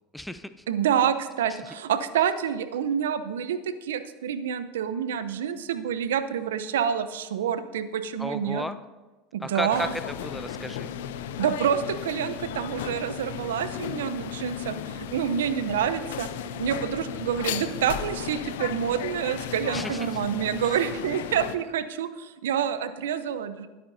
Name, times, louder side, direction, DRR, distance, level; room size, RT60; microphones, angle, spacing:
voice 1, 0.1-0.6 1.5-1.6 8.2-8.8 9.4-10.9 19.7-20.1, left 1 dB, 5° left, 11 dB, 0.7 m, -33 dB
voice 2, 0.7-8.6 9.3-9.9 11.4-16.3 16.6-23.7, right 8 dB, 75° right, 12 dB, 0.7 m, -27 dB
sound 1, 9.7-21.6, left 9 dB, 70° left, 0.6 m, -35 dB
20.0 x 8.6 x 2.7 m, 1.2 s
hypercardioid pair, 75°, 0 cm